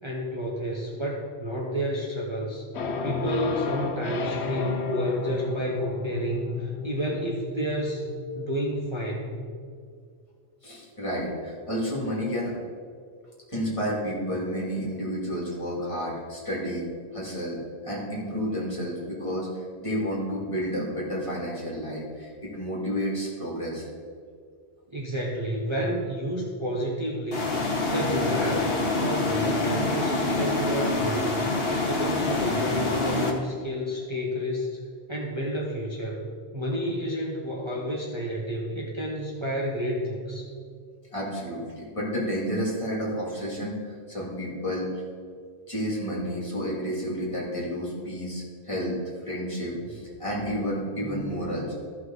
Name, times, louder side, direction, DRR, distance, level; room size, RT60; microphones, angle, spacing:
voice 1, 0.0-2.6 3.0-8.1 8.3-9.4 24.9-27.5 27.9-31.4 31.7-34.8 35.1-40.5, equal, 25° right, -4 dB, 1.1 m, -30 dB
sound 1, 2.7-9.7, left 4 dB, 80° left, 1.0 m, -32 dB
voice 2, 10.6-12.5 13.5-16.8 17.1-19.5 19.8-23.9 41.1-44.9 45.7-49.0 49.2-51.7, equal, 30° left, -5 dB, 2.8 m, -31 dB
sound 2, 27.3-33.3, left 3 dB, 65° left, 1.6 m, -26 dB
14.5 x 5.8 x 4.0 m, 2.2 s
omnidirectional pair, 1.1 m